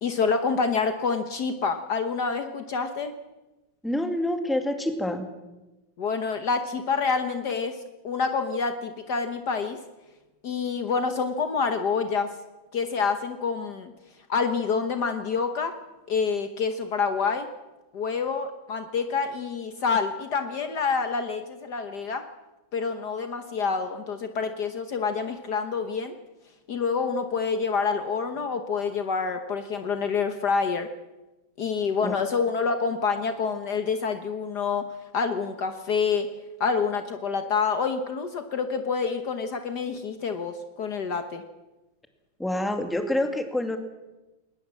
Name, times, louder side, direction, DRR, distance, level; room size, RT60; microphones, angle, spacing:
voice 1, 0.0-3.1 6.0-7.8 8.0-9.8 10.4-12.3 12.7-13.9 14.3-15.7 16.1-17.5 17.9-22.2 22.7-26.1 26.7-30.9 31.6-34.9 35.1-36.3 36.6-41.4, left 5 dB, 60° left, 7 dB, 1.6 m, -27 dB
voice 2, 3.8-5.3 32.0-32.2 42.4-43.8, left 1 dB, ahead, 5 dB, 2.1 m, -27 dB
20.5 x 19.5 x 7.5 m, 1.1 s
omnidirectional pair, 2.2 m